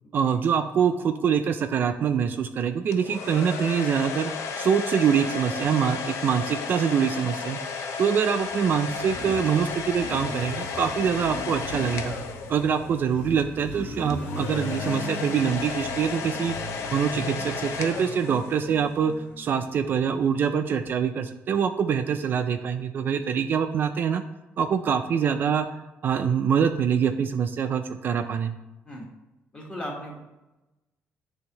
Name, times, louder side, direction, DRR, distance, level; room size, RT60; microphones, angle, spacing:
voice 1, 0.1-4.3 4.6-7.6 8.0-12.1 12.5-16.6 16.9-24.2 24.6-25.7 26.0-28.5, right 7 dB, 45° right, 7 dB, 0.3 m, -24 dB
sound 1, 2.9-13.0 14.1-18.8, left 5 dB, 75° left, 0.6 m, -33 dB
Motorcycle, 8.2-20.8, left 1 dB, 40° left, 1.3 m, -39 dB
voice 2, 29.5-30.2, equal, 20° left, -1 dB, 1.3 m, -36 dB
10.0 x 3.4 x 2.9 m, 1.0 s
cardioid pair, 165°, 5 cm